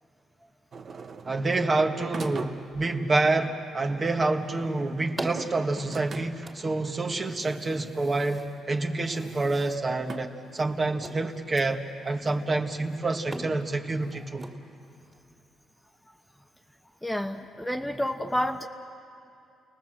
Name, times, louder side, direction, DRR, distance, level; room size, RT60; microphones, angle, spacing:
sound 1, 0.7-1.5 2.1-2.9 5.2-6.6 7.6-7.7 8.5-8.6 10.1-10.2, right 4 dB, 50° right, 1.2 m, -40 dB
voice 1, 1.2-14.5, right 2 dB, 30° right, 5 dB, 1.6 m, -27 dB
sound 2, 4.1-15.2, right 1 dB, 15° right, 2.7 m, -44 dB
voice 2, 17.0-18.7, equal, 5° left, 4 dB, 1.0 m, -29 dB
30.0 x 19.0 x 7.7 m, 2.7 s
cardioid pair, 90°, 0 cm